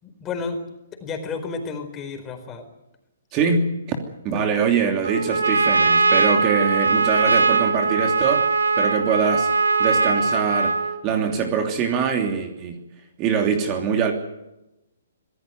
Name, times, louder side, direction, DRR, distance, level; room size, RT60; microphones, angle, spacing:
voice 1, 0.0-0.6 0.9-2.6, left 4 dB, 20° left, 5 dB, 4.5 m, -31 dB
voice 2, 3.3-4.0 4.2-9.5 9.8-10.8 11.0-12.8 13.2-14.1, right 6 dB, 30° right, 4 dB, 3.0 m, -23 dB
Trumpet, 5.0-11.0, right 4 dB, 90° right, 2.3 m, -20 dB
26.0 x 16.5 x 9.4 m, 0.94 s
hypercardioid pair, 140°, 0 cm